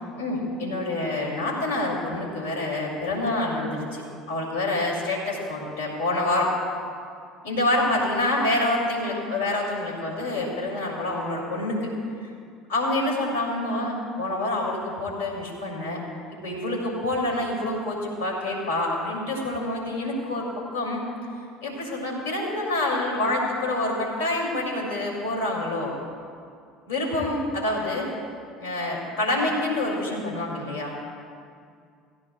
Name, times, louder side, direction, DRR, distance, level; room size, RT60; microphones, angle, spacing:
voice 1, 0.1-4.0 4.3-6.5 7.4-11.9 12.7-16.0 16.4-20.5 20.7-21.0 21.6-25.9 26.9-28.1 28.6-30.9, left 2 dB, 80° left, -2 dB, 3.1 m, -27 dB
17.5 x 14.5 x 2.5 m, 2.3 s
hypercardioid pair, 70°, 0 cm